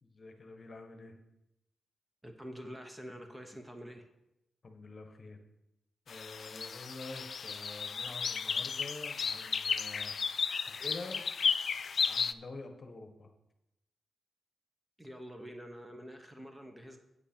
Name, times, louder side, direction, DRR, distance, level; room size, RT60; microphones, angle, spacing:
voice 1, 0.0-1.2 4.6-5.4 6.1-10.1 10.7-11.2 12.1-13.3, left 3 dB, 40° left, 6 dB, 1.3 m, -47 dB
voice 2, 2.2-4.1 15.0-17.0, equal, 10° right, 5 dB, 1.0 m, -46 dB
sound 1, 6.1-12.3, left 6 dB, 55° left, 0.3 m, -34 dB
8.6 x 8.1 x 4.5 m, 0.88 s
cardioid pair, 90°, 0 cm